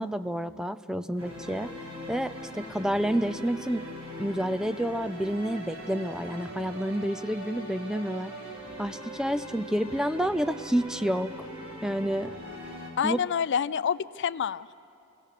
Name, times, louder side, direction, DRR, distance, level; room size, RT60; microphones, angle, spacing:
voice 1, 0.0-1.7 2.1-3.9 4.2-8.3 8.8-11.5 11.8-12.3 13.0-13.2, equal, 5° right, 12 dB, 0.4 m, -29 dB
sound 1, 1.2-12.9, equal, 80° right, 4.2 m, -41 dB
voice 2, 13.0-14.7, left 7 dB, 55° left, 16 dB, 0.4 m, -28 dB
27.0 x 17.5 x 6.6 m, 2.8 s
head